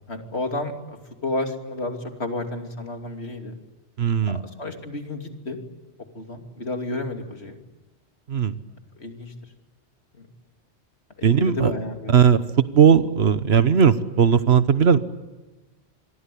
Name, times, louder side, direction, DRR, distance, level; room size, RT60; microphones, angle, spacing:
voice 1, 0.1-0.7 1.2-3.6 4.2-5.6 6.1-7.6 9.0-9.3 10.1-10.3 11.2-12.4, left 2 dB, 70° left, 4 dB, 3.1 m, -31 dB
voice 2, 4.0-4.4 8.3-8.5 11.2-11.7 12.1-12.4 12.7-15.0, right 7 dB, 70° right, 13 dB, 1.3 m, -17 dB
27.0 x 22.5 x 8.5 m, 1.2 s
omnidirectional pair, 1.1 m